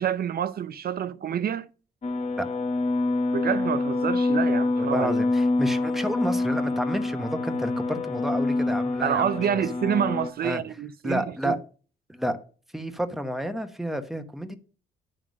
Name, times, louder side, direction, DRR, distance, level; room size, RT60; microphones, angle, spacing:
voice 1, 0.0-1.7 3.3-5.2 9.0-11.6, right 9 dB, 50° right, 0.5 m, -28 dB
sound 1, 2.0-10.3, left 2 dB, 35° left, 0.9 m, -26 dB
voice 2, 4.8-9.3 10.4-10.6 11.0-11.6 12.1-12.4 12.7-14.6, equal, ahead, 1.1 m, -30 dB
11.0 x 3.7 x 6.2 m
cardioid pair, 90°, 20 cm